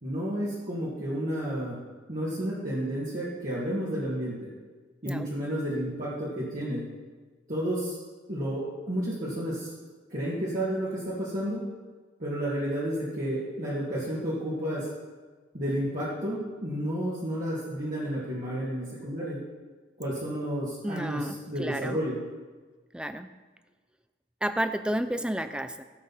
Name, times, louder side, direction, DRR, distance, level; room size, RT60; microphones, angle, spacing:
voice 1, 0.0-1.8 2.1-4.5 5.0-6.8 7.5-8.0 8.3-9.7 10.1-11.6 12.2-14.9 15.5-19.4 20.0-22.2, equal, 45° right, -8 dB, 2.1 m, -31 dB
voice 2, 20.8-22.0 22.9-23.3 24.4-25.8, right 1 dB, 5° right, 10 dB, 0.4 m, -31 dB
15.5 x 7.8 x 4.2 m, 1.4 s
head